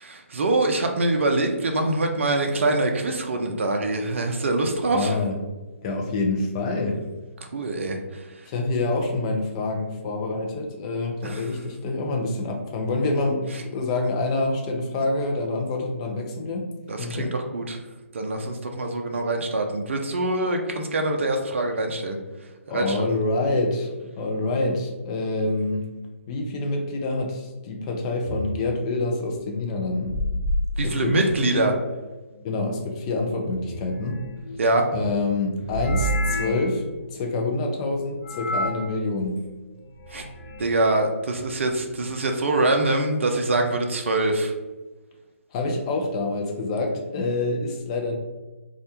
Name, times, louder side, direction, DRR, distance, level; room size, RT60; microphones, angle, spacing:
voice 1, 0.0-5.2 7.5-8.3 11.2-11.4 16.9-17.8 18.1-22.2 22.7-23.1 30.8-31.7 34.6-34.9 40.1-40.2 40.6-44.5, right 2 dB, 60° right, 4 dB, 0.4 m, -24 dB
voice 2, 4.9-5.4 5.8-7.0 8.5-16.7 17.0-17.3 22.7-25.9 26.3-30.2 30.8-31.1 31.5-31.6 32.4-34.2 34.9-39.4 45.5-48.2, left 2 dB, 25° left, 2 dB, 0.4 m, -26 dB
sound 1, 28.2-28.5 29.9-31.6 33.5-34.6 35.6-36.8 38.2-38.9 39.8-40.7, equal, 40° left, 0.9 m, -29 dB
2.4 x 2.1 x 2.8 m, 1.2 s
figure-of-eight pair, 140°, 8 cm